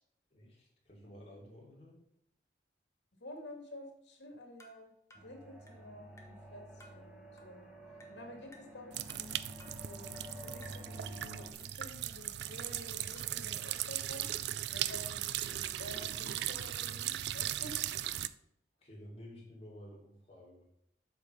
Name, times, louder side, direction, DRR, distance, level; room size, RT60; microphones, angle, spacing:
voice 1, 0.3-2.0 18.8-20.6, equal, 35° left, -3 dB, 2.8 m, -52 dB
voice 2, 3.2-4.9 5.2-7.7 8.1-9.3 9.8-14.3 14.7-17.7, left 1 dB, 75° left, 2 dB, 2.3 m, -50 dB
sound 1, 4.6-4.8 5.1-5.3 5.7-5.9 6.2-6.4 6.8-7.0 7.4-7.6 8.0-8.2 8.5-8.8 9.1-9.3 9.6-9.8 10.1-10.3 10.6-10.9 11.6-12.3 12.7-13.4 14.0-14.6 15.0-15.7, left 1 dB, 15° left, 0.9 m, -60 dB
sound 2, 5.1-11.5, equal, 5° right, 1.2 m, -50 dB
sound 3, 8.9-18.3, right 12 dB, 65° right, 0.4 m, -38 dB
8.2 x 5.0 x 5.6 m, 0.73 s
head